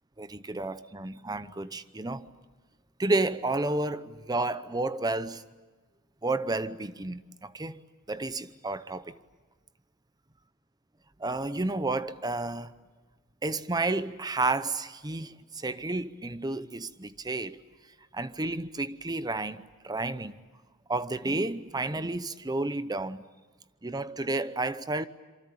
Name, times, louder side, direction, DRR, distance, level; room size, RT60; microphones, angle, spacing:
voice 1, 0.2-2.3 3.0-5.4 6.2-7.8 8.1-9.1 11.2-12.7 13.4-17.6 18.1-20.4 20.9-23.2 23.8-25.1, right 2 dB, 20° right, 0.8 m, -31 dB
27.0 x 24.0 x 8.7 m
head